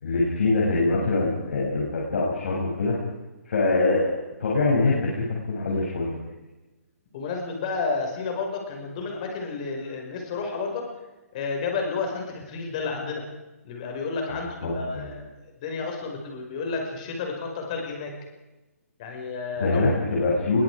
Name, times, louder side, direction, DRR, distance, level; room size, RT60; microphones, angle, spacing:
voice 1, 0.0-3.0 3.5-6.3 14.3-15.1 19.6-20.6, left 3 dB, 55° left, -4 dB, 7.4 m, -24 dB
voice 2, 7.1-10.9 11.3-13.2 13.6-15.2 15.6-18.1 19.0-20.0, left 4 dB, 25° left, 2 dB, 5.4 m, -31 dB
28.0 x 23.5 x 4.9 m, 1.1 s
hypercardioid pair, 175°, 8 cm